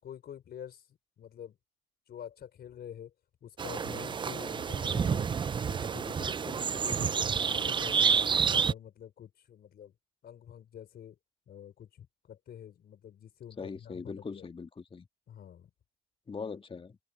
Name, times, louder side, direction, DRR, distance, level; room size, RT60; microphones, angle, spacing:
voice 1, 0.0-0.8 1.2-1.6 2.1-3.1 3.4-5.3 5.6-8.3 8.6-9.9 10.2-11.2 11.5-14.5 15.3-15.7, left 9 dB, 50° left, 4.9 m, -47 dB
sound 1, 3.6-8.7, right 6 dB, 25° right, 0.5 m, -29 dB
voice 2, 4.9-5.2 13.6-15.1 16.3-17.0, left 5 dB, 25° left, 2.1 m, -41 dB
open air
supercardioid pair, 80°, 20 cm